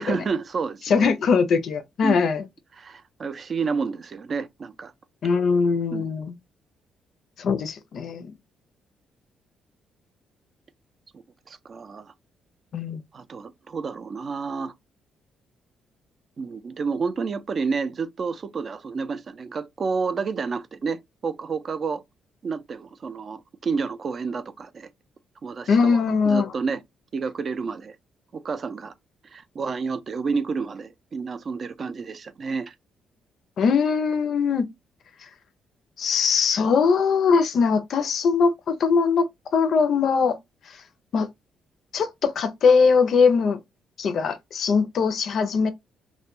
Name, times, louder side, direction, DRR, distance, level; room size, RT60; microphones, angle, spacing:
voice 1, 0.0-1.1 2.0-2.3 2.8-4.9 5.9-6.1 11.5-12.1 13.1-14.7 16.4-22.0 22.4-24.9 25.4-26.8 27.1-28.0 28.3-28.9 29.2-32.7, right 5 dB, 45° right, 0.4 m, -30 dB
voice 2, 0.9-2.4 5.2-6.3 7.4-8.3 12.7-13.0 25.7-26.5 33.6-34.7 36.0-39.3 39.5-40.4 41.1-41.3 41.9-43.6 44.0-45.7, left 5 dB, 60° left, 0.4 m, -21 dB
2.2 x 2.1 x 2.9 m
cardioid pair, 90°, 0 cm